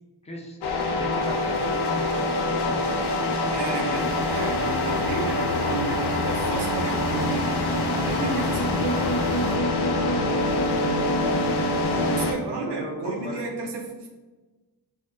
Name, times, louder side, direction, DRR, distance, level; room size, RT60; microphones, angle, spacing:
voice 1, 0.2-0.6 0.9-3.2 7.6-8.3 8.9-9.5 9.9-10.4 12.5-13.4, equal, 15° left, -1 dB, 0.5 m, -38 dB
sound 1, 0.6-12.3, left 2 dB, 80° left, 0.6 m, -25 dB
sound 2, 2.5-10.3, left 1 dB, 45° left, 0.8 m, -43 dB
voice 2, 3.5-7.7 8.0-9.1 12.1-14.1, right 3 dB, 90° right, 0 dB, 0.7 m, -32 dB
sound 3, 4.0-9.6, right 1 dB, 50° right, 0.5 m, -35 dB
5.4 x 2.0 x 2.6 m, 1.2 s
wide cardioid pair, 175°, 40 cm